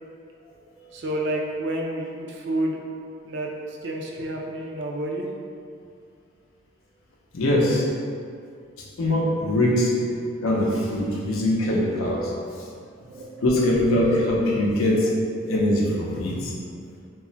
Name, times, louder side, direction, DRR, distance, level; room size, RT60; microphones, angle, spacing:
voice 1, 0.9-2.8 3.2-5.2 13.0-13.5, right 1 dB, 55° right, -1 dB, 0.3 m, -30 dB
voice 2, 7.3-7.9 9.0-9.9 10.4-12.3 13.4-15.1 15.5-16.5, left 1 dB, 80° left, -3 dB, 0.5 m, -22 dB
2.3 x 2.0 x 3.8 m, 2.3 s
head